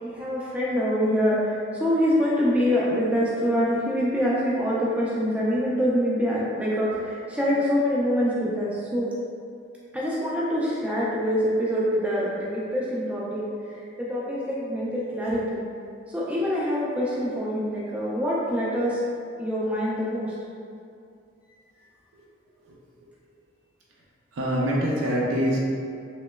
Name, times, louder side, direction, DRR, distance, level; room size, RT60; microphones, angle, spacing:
voice 1, 0.0-9.1 9.9-13.4 14.0-15.6 16.1-19.0 19.4-20.3, equal, 5° right, -7 dB, 0.4 m, -25 dB
voice 2, 24.4-25.6, equal, 80° right, -5 dB, 0.5 m, -24 dB
3.0 x 2.9 x 2.2 m, 2.4 s
head